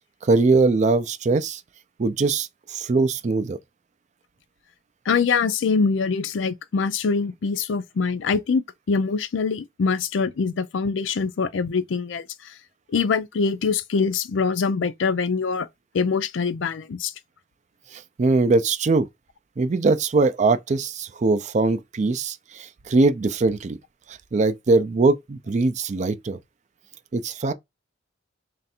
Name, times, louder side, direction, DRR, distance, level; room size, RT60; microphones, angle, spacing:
voice 1, 0.2-1.6 2.0-3.6 17.9-19.1 19.6-23.8 24.1-26.4 27.1-27.5, right 3 dB, 40° right, 0.4 m, -21 dB
voice 2, 5.1-12.2 12.9-15.7 15.9-17.1, left 5 dB, 75° left, 0.4 m, -24 dB
3.3 x 2.5 x 4.2 m
head